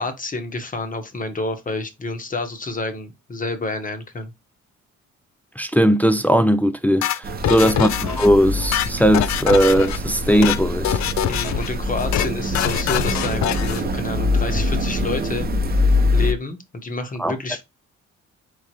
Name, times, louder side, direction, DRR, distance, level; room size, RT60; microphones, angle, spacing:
voice 1, 0.0-4.3 7.4-7.8 11.3-15.5 16.1-17.6, left 3 dB, 25° left, 1.0 m, -29 dB
voice 2, 5.6-7.9 8.2-11.0 17.2-17.3, equal, 5° left, 0.4 m, -18 dB
sound 1, 7.0-8.3 8.6-10.0 10.3-10.6 10.8-11.7 12.0-12.3 12.5-13.8, left 11 dB, 65° left, 0.4 m, -24 dB
sound 2, 7.2-16.3, left 2 dB, 30° right, 0.7 m, -24 dB
4.8 x 3.5 x 2.9 m
cardioid pair, 90°, 30 cm